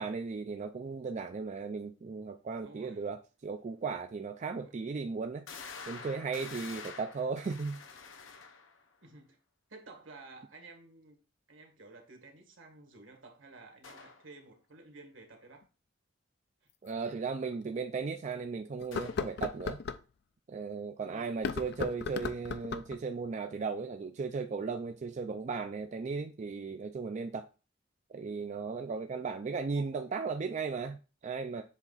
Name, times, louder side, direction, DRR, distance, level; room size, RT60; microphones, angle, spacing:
voice 1, 0.0-5.4 5.9-7.8 16.8-19.8 20.5-27.4 28.1-31.6, right 4 dB, 40° right, 0.4 m, -36 dB
voice 2, 2.6-3.1 4.4-4.7 9.0-9.4 9.7-11.2 11.5-15.7 16.6-16.7 21.1-21.4, right 3 dB, 75° right, 1.7 m, -53 dB
sound 1, 3.8-3.9 4.5-4.6 5.5-8.9 13.8-14.2 18.9-19.4, left 5 dB, 80° left, 0.8 m, -47 dB
sound 2, 15.6-15.7 16.9-17.0 17.5-17.6 18.8-20.0 21.3-23.0, left 5 dB, 55° left, 0.4 m, -36 dB
7.3 x 3.3 x 3.9 m
head